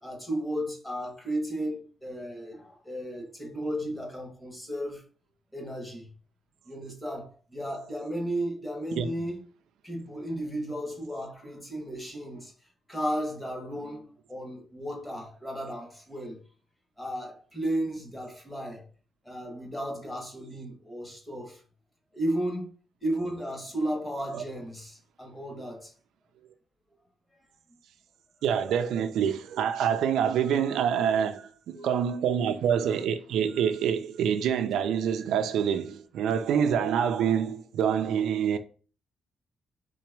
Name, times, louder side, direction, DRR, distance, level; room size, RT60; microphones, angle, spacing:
voice 1, 0.0-5.0 5.5-6.1 6.7-9.4 9.8-12.5 12.9-16.4 17.0-18.9 19.2-21.6 22.1-22.7 23.0-25.9 31.7-32.0, right 1 dB, 10° left, 1.1 m, -34 dB
voice 2, 28.4-38.6, right 8 dB, 85° right, 0.4 m, -26 dB
3.9 x 2.9 x 4.6 m
cardioid pair, 155°, 0 cm